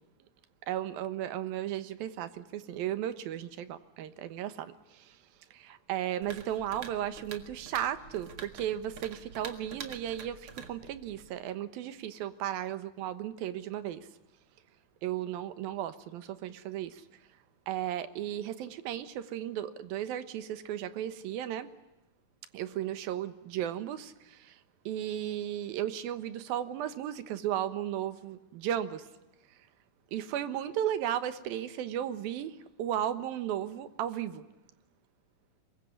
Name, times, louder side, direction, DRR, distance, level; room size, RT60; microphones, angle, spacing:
voice 1, 0.6-5.2 5.5-14.1 15.0-17.0 17.7-21.7 22.5-24.6 24.9-29.0 30.1-34.4, right 11 dB, 85° right, 12 dB, 3.0 m, -35 dB
sound 1, 6.2-11.4, right 6 dB, 45° right, 2.2 m, -47 dB
24.5 x 22.0 x 9.7 m, 0.95 s
omnidirectional pair, 4.1 m